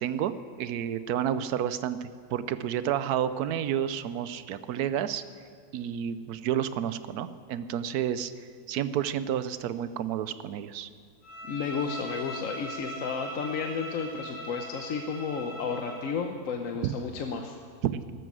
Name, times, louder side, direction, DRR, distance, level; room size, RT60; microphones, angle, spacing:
voice 1, 0.0-5.2 5.7-8.3 8.7-10.9 16.8-17.0 17.8-18.0, right 10 dB, 85° right, 13 dB, 1.2 m, -30 dB
Bowed string instrument, 11.2-16.1, equal, 80° left, 4.3 m, -40 dB
voice 2, 11.4-17.6, left 5 dB, 65° left, 4 dB, 1.2 m, -32 dB
14.0 x 12.5 x 6.2 m, 2.3 s
omnidirectional pair, 1.6 m